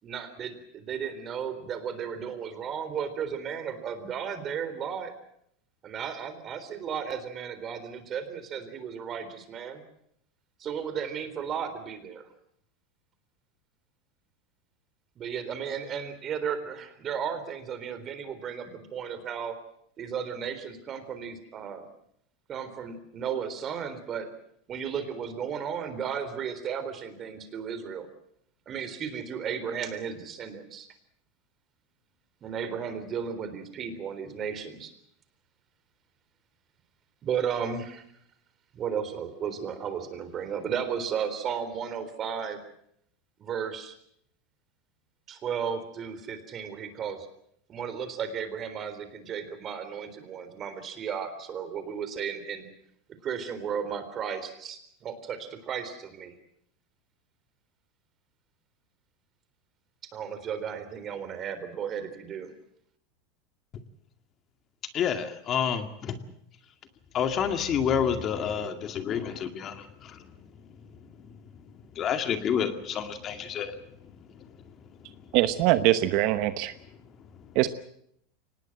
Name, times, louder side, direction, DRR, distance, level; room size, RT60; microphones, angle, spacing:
voice 1, 0.0-5.1 5.8-9.8 10.6-12.3 15.2-19.6 20.0-21.9 22.5-24.3 24.7-28.1 28.7-30.9 32.4-34.9 37.2-38.0 38.7-42.6 43.4-44.0 45.3-47.3 47.7-52.7 53.2-56.3 60.1-62.5, right 7 dB, 30° right, 11 dB, 3.8 m, -34 dB
voice 2, 64.9-66.2 67.1-70.2 72.0-73.8, left 8 dB, 30° left, 8 dB, 2.1 m, -29 dB
voice 3, 75.3-76.7 77.5-77.7, right 15 dB, 55° right, 12 dB, 1.0 m, -23 dB
24.5 x 19.5 x 7.7 m, 0.70 s
supercardioid pair, 145°, 0 cm